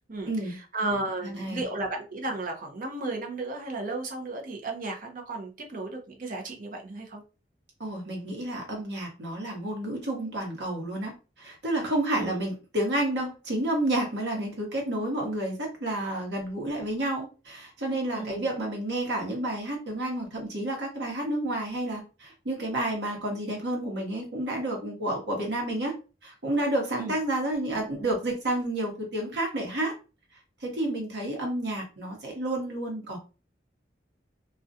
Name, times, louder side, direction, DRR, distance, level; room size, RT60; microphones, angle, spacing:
voice 1, 0.1-7.2 12.1-12.4 18.1-18.5 26.9-27.2, right 2 dB, 50° right, 3 dB, 0.7 m, -34 dB
voice 2, 1.2-1.6 7.8-11.1 11.4-25.9 26.2-29.9 30.6-33.2, right 1 dB, 75° right, 0 dB, 1.1 m, -30 dB
2.4 x 2.2 x 2.6 m, 0.32 s
head